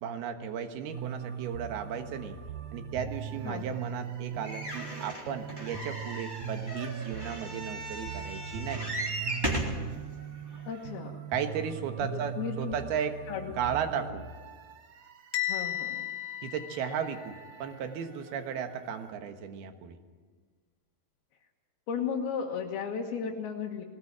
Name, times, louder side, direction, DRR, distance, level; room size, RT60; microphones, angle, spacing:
voice 1, 0.0-2.4 2.7-8.9 11.3-13.2 13.6-14.3 16.4-20.0, right 7 dB, 75° right, 7 dB, 3.3 m, -35 dB
sound 1, 0.9-19.1, right 8 dB, 60° right, 2.1 m, -41 dB
sound 2, 4.4-9.8 10.5-10.6 10.9-11.0, right 1 dB, 5° right, 3.0 m, -36 dB
voice 2, 10.7-11.3 12.0-12.8 13.3-13.6 14.0-14.1 15.5-16.0 21.9-23.8, left 7 dB, 75° left, -2 dB, 3.4 m, -35 dB
Bell, 15.3-17.4, left 12 dB, 50° left, 3.2 m, -34 dB
21.0 x 19.0 x 8.7 m, 1.5 s
omnidirectional pair, 4.6 m